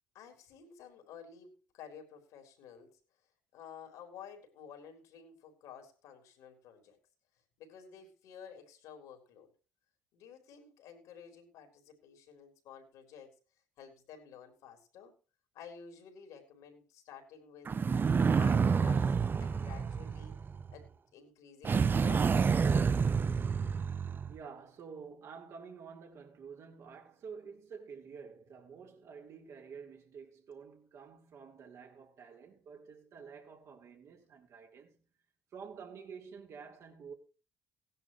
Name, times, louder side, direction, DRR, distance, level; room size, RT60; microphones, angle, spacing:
voice 1, 0.1-3.0 3.5-7.0 7.6-9.5 10.1-13.3 13.8-15.1 15.5-17.8 18.3-19.1 19.4-20.4 20.7-22.6, left 7 dB, 75° left, 4.1 m, -52 dB
sound 1, 17.6-20.7 21.6-24.4, right 5 dB, 35° right, 0.7 m, -28 dB
voice 2, 24.3-35.1 35.5-37.1, right 6 dB, 60° right, 4.1 m, -49 dB
17.0 x 11.0 x 3.2 m
hypercardioid pair, 60°, 6 cm